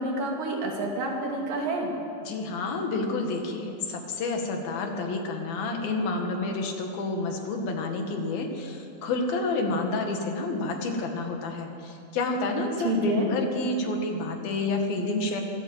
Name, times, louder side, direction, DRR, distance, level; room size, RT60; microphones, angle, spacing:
voice 1, 0.0-1.9 12.8-13.3, right 2 dB, 70° right, 0 dB, 4.3 m, -28 dB
voice 2, 2.3-15.4, left 2 dB, 90° left, 3 dB, 3.8 m, -29 dB
24.5 x 13.5 x 8.0 m, 2.6 s
omnidirectional pair, 4.1 m